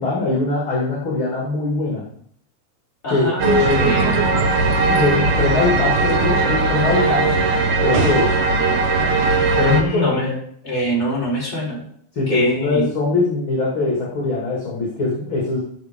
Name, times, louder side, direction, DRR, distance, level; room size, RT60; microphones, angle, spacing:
voice 1, 0.0-2.1 3.1-3.9 4.9-7.3 7.8-8.4 9.6-10.2 12.1-15.6, left 3 dB, 45° left, -4 dB, 3.2 m, -21 dB
voice 2, 3.0-4.2 9.6-10.4 10.6-11.8 12.3-12.9, equal, 20° left, -4 dB, 4.9 m, -23 dB
sound 1, 3.4-9.8, right 3 dB, 90° right, 3.2 m, -18 dB
16.0 x 7.8 x 3.8 m, 0.65 s
omnidirectional pair, 3.5 m